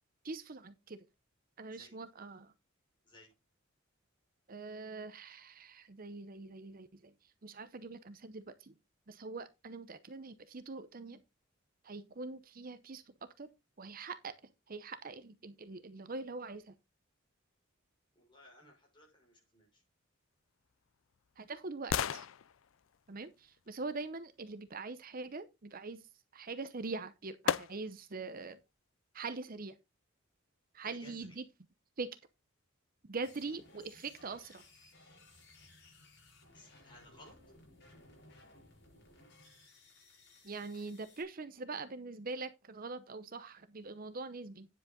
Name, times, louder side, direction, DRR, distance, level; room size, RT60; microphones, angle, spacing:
voice 1, 0.2-1.0 1.6-2.5 4.5-7.1 7.4-8.7 9.1-11.2 11.8-13.0 13.4-13.5 13.8-14.3 14.7-16.7 21.4-22.3 23.1-26.0 26.3-28.6 29.1-29.7 30.7-31.4 32.0-32.1 33.1-34.6 40.4-44.7, right 3 dB, 45° right, 0.8 m, -43 dB
voice 2, 18.1-19.8 30.8-31.4 36.5-37.4, left 1 dB, 25° left, 5.9 m, -59 dB
sound 1, 20.3-24.5 26.6-26.7 27.5-28.2 28.6-28.7, left 8 dB, 75° left, 0.4 m, -39 dB
sound 2, 33.2-41.2, left 2 dB, 55° left, 7.2 m, -60 dB
10.0 x 7.7 x 3.8 m
head